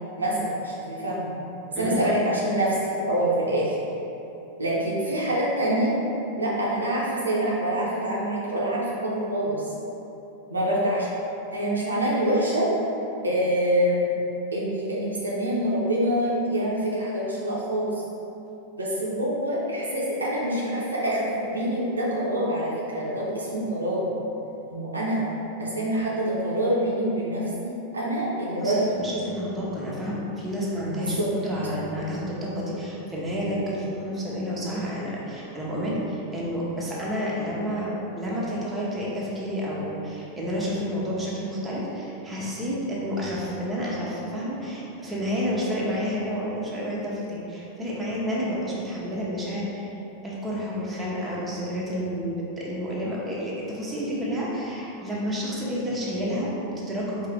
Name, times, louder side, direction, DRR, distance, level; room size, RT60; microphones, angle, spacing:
voice 1, 0.2-1.3 1.8-3.8 4.6-5.9 6.4-9.7 10.5-11.1 11.5-12.7 13.2-14.2 14.5-18.0 18.8-24.1 24.7-25.2 25.6-28.8 31.0-31.3, right 1 dB, 75° right, -6 dB, 0.7 m, -26 dB
voice 2, 1.7-2.1 28.6-49.9 50.2-57.3, equal, 10° right, -6 dB, 1.0 m, -30 dB
4.6 x 2.9 x 3.4 m, 3.0 s
figure-of-eight pair, 90°, 0 cm